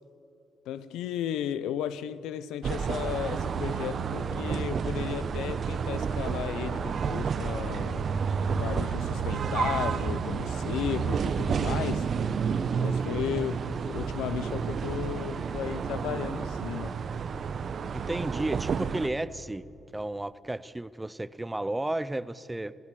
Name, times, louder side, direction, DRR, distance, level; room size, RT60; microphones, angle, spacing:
voice 1, 0.7-8.1 8.5-12.1 12.8-17.0, left 10 dB, 90° left, 0.7 m, -34 dB
sound 1, 2.6-19.1, right 6 dB, 55° right, 0.9 m, -30 dB
voice 2, 17.9-19.7 19.9-22.7, right 1 dB, 10° right, 0.6 m, -33 dB
25.5 x 15.5 x 6.8 m
cardioid pair, 90°, 0 cm